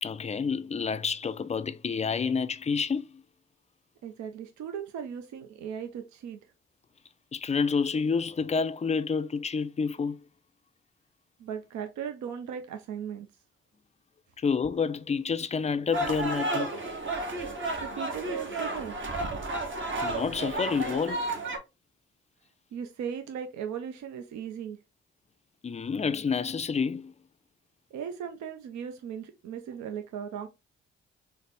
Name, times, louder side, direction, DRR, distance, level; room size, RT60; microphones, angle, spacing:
voice 1, 0.0-3.2 7.3-10.2 14.4-16.7 20.0-21.3 25.6-27.1, left 5 dB, 25° left, 0.3 m, -29 dB
voice 2, 4.0-6.4 11.4-13.3 17.7-19.0 22.7-24.8 27.9-30.5, right 8 dB, 70° right, 0.5 m, -37 dB
sound 1, 15.9-21.6, right 2 dB, 40° right, 1.1 m, -32 dB
4.0 x 2.0 x 3.3 m
supercardioid pair, 45°, 29 cm